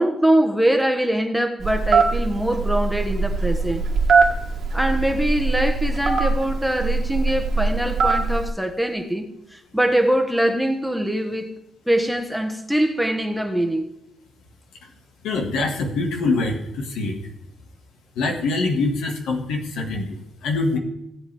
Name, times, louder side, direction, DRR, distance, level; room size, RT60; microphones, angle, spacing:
voice 1, 0.0-3.8 4.7-11.5 11.9-13.8, right 1 dB, ahead, 1.4 m, -23 dB
Telephone, 1.6-8.5, right 4 dB, 55° right, 1.9 m, -21 dB
voice 2, 15.2-17.2 18.2-20.8, left 3 dB, 85° left, 2.0 m, -24 dB
17.0 x 8.0 x 3.5 m
cardioid pair, 90°, 0 cm